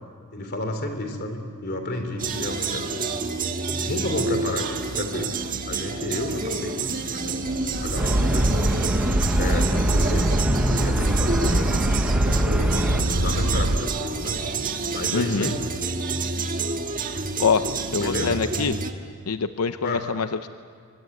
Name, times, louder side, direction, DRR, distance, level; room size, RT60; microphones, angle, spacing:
voice 1, 0.3-3.1 3.8-5.3 5.6-9.1 9.4-10.5 10.7-11.8 12.5-14.4 14.9-15.7 18.0-18.4 19.8-20.1, left 1 dB, 50° left, 6 dB, 3.5 m, -31 dB
sound 1, 2.2-18.9, right 4 dB, 40° right, 1.5 m, -29 dB
sound 2, 7.5-13.8, right 1 dB, 80° right, 1.4 m, -23 dB
sound 3, 8.0-13.0, equal, 5° right, 0.9 m, -28 dB
voice 2, 15.1-15.5 17.4-17.7 17.9-18.7 19.3-20.5, left 5 dB, 90° left, 10 dB, 0.6 m, -24 dB
25.0 x 24.0 x 9.3 m, 2.2 s
head